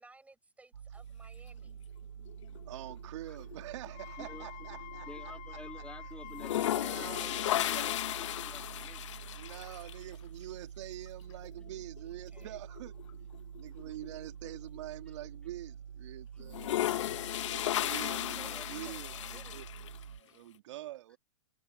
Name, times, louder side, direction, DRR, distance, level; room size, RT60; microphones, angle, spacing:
voice 1, 0.0-1.8 6.8-7.5 12.3-12.6 18.1-19.6 20.3-20.4, right 3 dB, 10° right, 7.0 m, -57 dB
sound 1, 0.7-20.2, right 8 dB, 85° right, 3.6 m, -48 dB
sound 2, 2.3-3.1 3.4-5.4 5.7-5.8 6.2-10.0 11.4-11.5 12.0-12.1 12.4-14.8 15.3-15.4 16.4-20.0, left 13 dB, 70° left, 1.1 m, -35 dB
voice 2, 2.7-6.1 6.6-8.0 9.3-12.9 13.6-16.7 17.5-19.7 20.1-21.2, right 15 dB, 65° right, 2.1 m, -46 dB
Wind instrument woodwind instrument, 3.9-8.4, left 21 dB, 45° left, 1.6 m, -48 dB
voice 3, 5.1-9.1 18.4-18.7 19.9-20.0, left 2 dB, 5° left, 2.3 m, -51 dB
hypercardioid pair, 110°, 16 cm